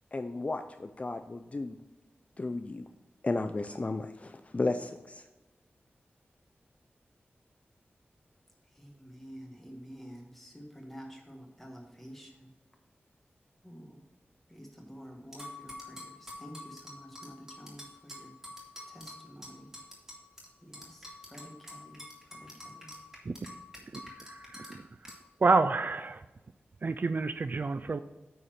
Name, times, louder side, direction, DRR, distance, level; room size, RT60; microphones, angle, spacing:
voice 1, 0.1-1.8 2.4-2.8 3.2-5.2, left 2 dB, 35° left, 8 dB, 0.4 m, -34 dB
voice 2, 8.7-12.5 13.6-14.0 14.5-18.3 18.9-19.7 20.6-22.9, equal, 5° left, 1 dB, 1.8 m, -49 dB
sound 1, 15.3-20.5 20.7-24.7 25.0-25.2, left 1 dB, 10° right, 2.6 m, -46 dB
voice 3, 23.9-24.8 25.4-26.2 26.8-28.0, right 3 dB, 50° right, 11 dB, 0.4 m, -29 dB
9.1 x 4.3 x 6.4 m, 1.1 s
wide cardioid pair, 100°, 4 cm